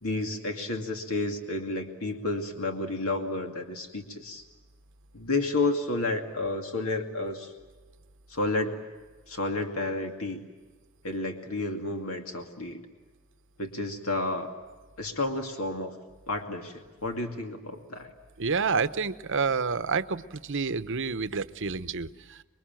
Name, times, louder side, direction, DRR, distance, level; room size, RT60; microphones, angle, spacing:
voice 1, 0.0-4.4 5.1-7.5 8.3-8.8 9.3-10.4 11.0-12.8 13.6-14.5 15.0-15.9 16.3-18.1, left 2 dB, 70° left, 4 dB, 2.4 m, -31 dB
voice 2, 18.4-22.4, right 5 dB, 60° right, 12 dB, 1.0 m, -29 dB
27.0 x 22.0 x 9.1 m, 1.3 s
head